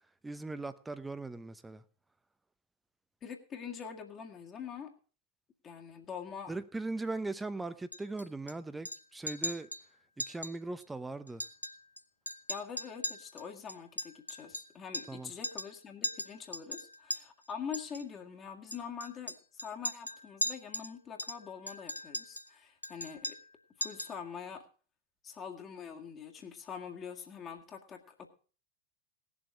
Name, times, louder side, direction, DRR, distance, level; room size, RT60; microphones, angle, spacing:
voice 1, 0.2-1.8 6.5-9.7 10.2-11.4 15.1-15.3, right 3 dB, 10° right, 0.8 m, -39 dB
voice 2, 3.2-4.9 5.6-6.5 12.5-23.4 23.8-24.7 25.2-28.3, left 7 dB, 25° left, 1.9 m, -44 dB
Chink clink, 7.9-8.5 8.8-9.0 9.3-9.8 10.2-10.5 10.8-10.9 11.3-12.0 12.3-15.2 15.4-15.7 16.0-17.2 17.7-18.0 18.7-20.9 21.2-22.5 22.8-23.5 23.8-24.2, left 1 dB, 85° left, 0.7 m, -39 dB
18.0 x 7.3 x 5.3 m
figure-of-eight pair, 90°, 0 cm